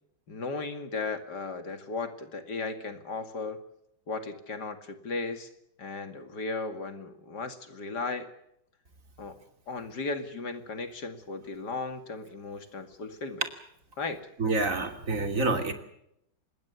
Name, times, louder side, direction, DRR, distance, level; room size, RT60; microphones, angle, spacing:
voice 1, 0.3-3.6 4.1-5.5 5.8-8.3 9.2-9.4 9.7-13.4 14.0-14.2, left 3 dB, 70° left, 8 dB, 2.9 m, -36 dB
voice 2, 14.4-15.7, right 3 dB, 50° right, 6 dB, 3.2 m, -27 dB
25.5 x 21.0 x 7.2 m, 0.78 s
omnidirectional pair, 1.9 m